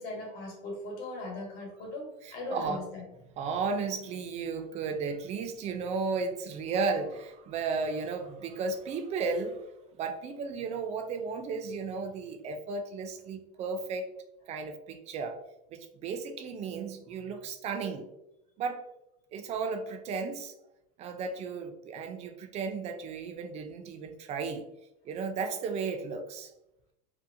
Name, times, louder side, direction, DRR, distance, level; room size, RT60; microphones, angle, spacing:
voice 1, 0.0-3.0, left 2 dB, 50° left, -1 dB, 1.1 m, -39 dB
voice 2, 2.2-2.8 3.4-9.6 10.0-14.1 14.5-15.4 15.7-18.1 18.6-18.9 19.3-20.5 21.0-24.6 25.0-26.5, right 4 dB, 35° right, 6 dB, 0.4 m, -34 dB
2.7 x 2.1 x 2.5 m, 0.87 s
supercardioid pair, 120°, 20 cm